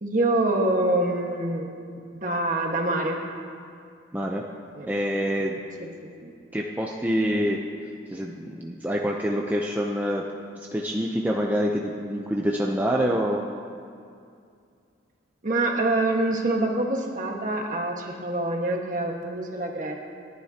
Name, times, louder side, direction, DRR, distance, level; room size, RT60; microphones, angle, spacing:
voice 1, 0.0-1.7 2.1-3.2 4.7-4.9 5.8-6.3 15.4-19.9, right 2 dB, 40° right, 0 dB, 1.6 m, -25 dB
voice 2, 4.1-4.4 4.9-5.6 6.5-7.6 8.1-10.2 10.6-13.4, equal, 10° right, -1 dB, 0.6 m, -26 dB
27.5 x 11.5 x 2.9 m, 2.4 s
head